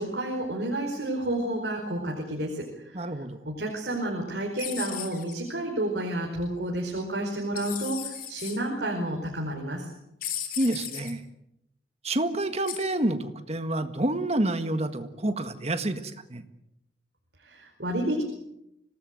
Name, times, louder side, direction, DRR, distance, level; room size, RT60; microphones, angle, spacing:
voice 1, 0.0-3.0 3.4-9.8 17.4-18.2, right 1 dB, 60° right, 1 dB, 4.8 m, -30 dB
voice 2, 2.9-3.4 10.6-11.2 12.0-16.4, right 1 dB, 35° right, 9 dB, 1.7 m, -28 dB
sound 1, 4.6-5.3 7.6-8.6 10.2-11.1 12.7-12.9, left 10 dB, 50° left, 3.6 m, -36 dB
26.0 x 19.0 x 7.8 m, 0.81 s
head